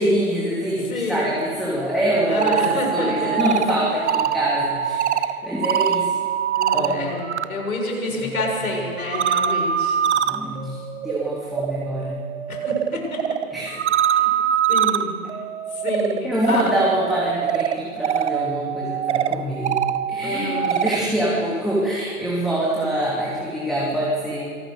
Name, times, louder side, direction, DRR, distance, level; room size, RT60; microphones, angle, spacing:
voice 1, 0.0-6.2 6.7-7.1 8.1-8.3 8.6-8.8 10.2-10.8 11.0-12.2 13.5-13.8 16.2-19.8 20.1-24.5, right 1 dB, ahead, -6 dB, 3.0 m, -25 dB
voice 2, 0.9-1.3 2.3-3.6 6.5-10.0 12.5-13.2 14.1-14.3 14.7-15.1 15.8-16.6 20.2-20.9, left 2 dB, 75° left, 1 dB, 6.9 m, -28 dB
sound 1, 2.2-7.5 7.8-21.0, right 9 dB, 50° right, 1.2 m, -24 dB
26.0 x 19.0 x 6.6 m, 2.2 s
figure-of-eight pair, 130°, 43 cm